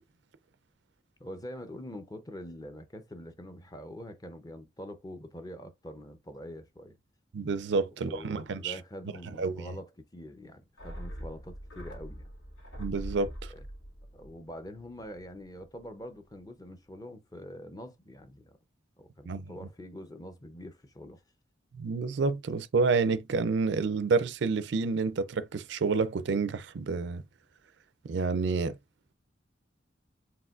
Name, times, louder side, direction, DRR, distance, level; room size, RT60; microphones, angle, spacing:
voice 1, 1.2-7.0 8.0-12.3 13.5-13.6 14.1-18.6 19.0-21.2, equal, 20° left, 0.6 m, -45 dB
voice 2, 7.3-8.7 9.4-9.7 12.8-13.5 19.3-19.5 21.7-27.2 28.0-28.8, right 4 dB, 65° right, 0.4 m, -29 dB
sound 1, 10.8-15.4 15.7-15.8, equal, 90° left, 2.1 m, -43 dB
4.8 x 3.7 x 2.4 m
head